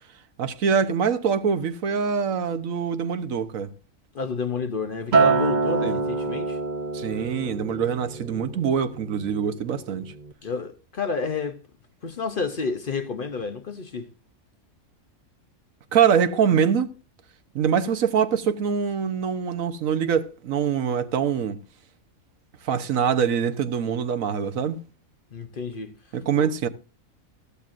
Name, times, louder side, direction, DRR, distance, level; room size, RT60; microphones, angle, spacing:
voice 1, 0.4-3.7 5.8-6.0 6.9-10.1 15.9-16.9 17.5-21.6 22.6-24.8 26.1-26.7, right 7 dB, 75° right, 1.3 m, -24 dB
voice 2, 4.1-6.6 10.4-11.6 12.0-14.1 25.3-25.9 26.4-26.5, left 4 dB, 45° left, 0.8 m, -30 dB
Acoustic guitar, 5.1-9.5 9.9-10.3, right 4 dB, 40° right, 0.7 m, -26 dB
15.0 x 13.5 x 2.5 m
omnidirectional pair, 1.4 m